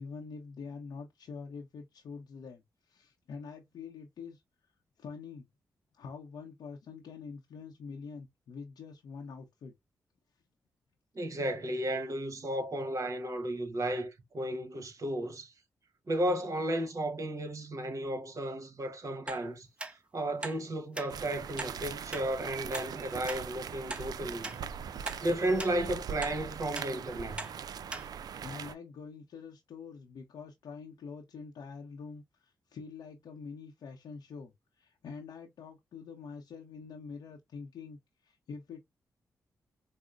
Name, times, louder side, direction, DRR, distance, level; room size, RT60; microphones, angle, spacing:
voice 1, 0.0-4.7 5.0-5.5 5.9-9.7 28.4-38.8, left 5 dB, 75° left, 0.7 m, -45 dB
voice 2, 11.1-15.5 16.1-19.7 20.1-24.5 25.2-27.4, right 1 dB, 50° right, 1.2 m, -33 dB
sound 1, 19.3-19.4 19.8-19.9 20.4-20.6 21.0-21.1 21.6-21.7 22.1-22.3 22.7-22.9 23.3-23.4 23.9-24.1 24.4-24.6 25.1-25.2 25.6-25.7 26.2-26.4 26.7-26.9 27.4-27.5 27.9-28.1 28.5-28.6, right 2 dB, 15° right, 0.9 m, -39 dB
sound 2, 21.1-28.7, right 7 dB, 65° right, 0.3 m, -41 dB
5.0 x 2.0 x 2.4 m
supercardioid pair, 50°, 7 cm